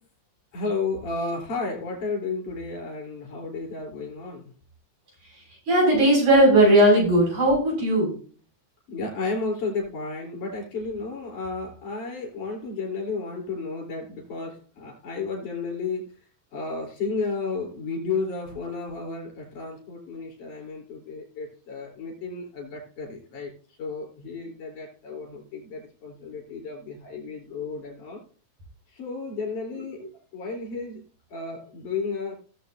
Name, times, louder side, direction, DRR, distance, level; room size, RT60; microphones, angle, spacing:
voice 1, 0.5-4.5 8.9-16.2 16.5-23.5 23.8-28.2 28.9-30.0 30.3-31.0 31.3-32.3, left 4 dB, 85° left, -1 dB, 5.3 m, -32 dB
voice 2, 5.7-8.2, right 1 dB, 75° right, -3 dB, 7.7 m, -18 dB
18.0 x 7.6 x 2.7 m, 0.41 s
omnidirectional pair, 3.4 m